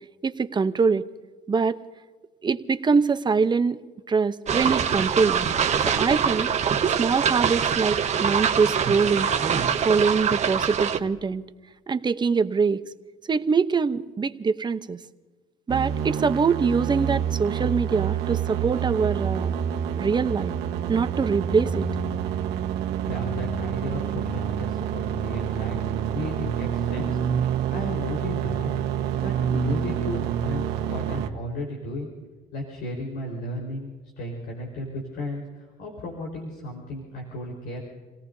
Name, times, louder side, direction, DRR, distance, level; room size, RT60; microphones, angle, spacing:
voice 1, 0.2-1.0 1.5-1.8 2.4-3.8 4.1-5.5 5.8-6.5 7.0-9.3 9.8-11.4 11.9-12.8 13.3-15.0 15.7-19.6 20.0-20.5 20.9-21.9, right 5 dB, 25° right, 11 dB, 0.8 m, -23 dB
sound 1, 4.5-11.0, right 7 dB, 40° right, 1.2 m, -24 dB
sound 2, 15.7-31.3, right 9 dB, 85° right, 1.3 m, -27 dB
voice 2, 23.0-27.2 27.7-28.7 29.2-32.1 32.5-37.8, left 1 dB, 75° left, 0 dB, 4.4 m, -34 dB
30.0 x 17.5 x 2.7 m, 1.3 s
cardioid pair, 110°, 17 cm